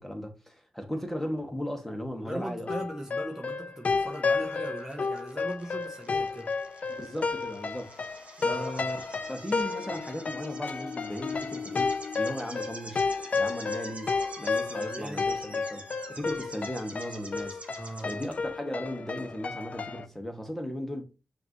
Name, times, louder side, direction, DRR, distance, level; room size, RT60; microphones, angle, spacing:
voice 1, 0.0-2.7 6.9-8.1 8.4-9.0 9.3-13.0 13.4-21.0, equal, 10° left, 1.4 m, -37 dB
voice 2, 2.2-6.5 8.4-8.7 14.5-15.2 17.8-18.2, right 1 dB, 20° right, 0.9 m, -39 dB
sound 1, 2.7-20.1, left 4 dB, 55° left, 0.4 m, -32 dB
sound 2, 4.0-18.3, right 2 dB, 45° right, 1.5 m, -47 dB
5.7 x 2.7 x 3.0 m
cardioid pair, 50°, 3 cm